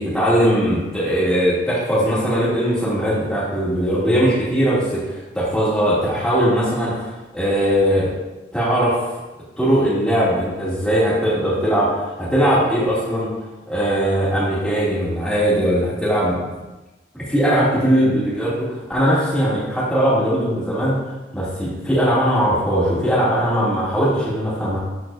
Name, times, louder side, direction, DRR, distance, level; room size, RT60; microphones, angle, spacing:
voice 1, 0.0-8.1 8.5-9.1 9.6-13.3 13.7-16.3 17.1-24.8, equal, 5° left, -9 dB, 2.3 m, -20 dB
11.5 x 4.5 x 2.5 m, 1.1 s
head